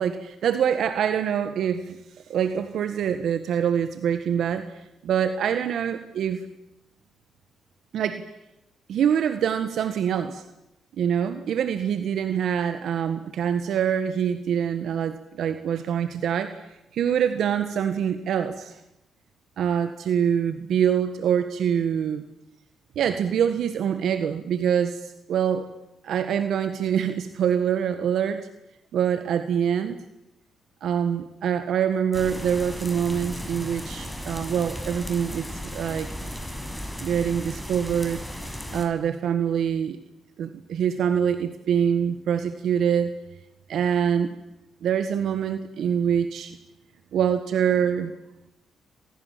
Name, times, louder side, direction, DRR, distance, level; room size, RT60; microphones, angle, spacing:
voice 1, 0.0-2.0 2.3-6.5 7.9-8.2 8.9-10.4 11.0-18.8 19.6-22.2 23.0-25.7 26.0-28.5 28.9-30.0 30.8-36.1 37.0-40.0 40.4-43.1 43.7-44.3 44.8-46.6 47.1-48.1, right 8 dB, 75° right, 10 dB, 1.6 m, -25 dB
sound 1, 32.1-38.8, equal, ahead, 6.2 m, -35 dB
29.0 x 24.5 x 7.6 m, 0.89 s
cardioid pair, 75°, 0 cm